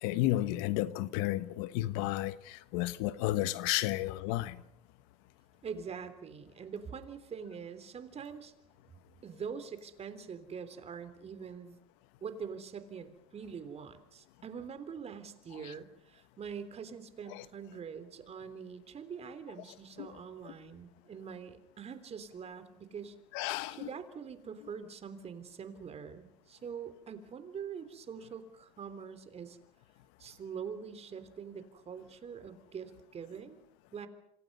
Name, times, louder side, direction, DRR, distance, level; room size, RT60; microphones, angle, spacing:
voice 1, 0.0-4.6 15.6-15.7 17.3-17.4 20.0-20.1 20.4-20.5 23.3-23.9, left 16 dB, 75° left, 1.2 m, -32 dB
voice 2, 5.6-8.5 9.2-11.8 12.2-23.2 23.8-29.6 30.2-33.6 33.9-34.1, right 6 dB, 30° right, 3.5 m, -44 dB
27.5 x 27.0 x 5.5 m
supercardioid pair, 115°, 20 cm